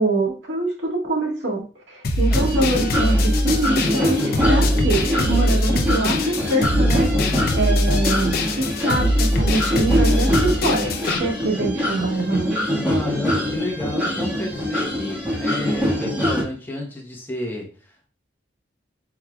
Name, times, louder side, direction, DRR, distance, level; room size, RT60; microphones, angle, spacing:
voice 1, 0.0-7.1 7.6-8.3 8.8-10.9 11.2-12.5, right 2 dB, 75° right, -1 dB, 1.7 m, -24 dB
sound 1, 2.0-11.2, equal, 55° left, 0.6 m, -22 dB
sound 2, 2.3-16.4, left 1 dB, 10° right, 1.6 m, -24 dB
sound 3, 6.8-15.8, right 2 dB, 45° right, 1.2 m, -47 dB
voice 2, 12.8-18.1, left 1 dB, 10° left, -1 dB, 1.1 m, -32 dB
4.7 x 4.5 x 2.3 m, 0.37 s
head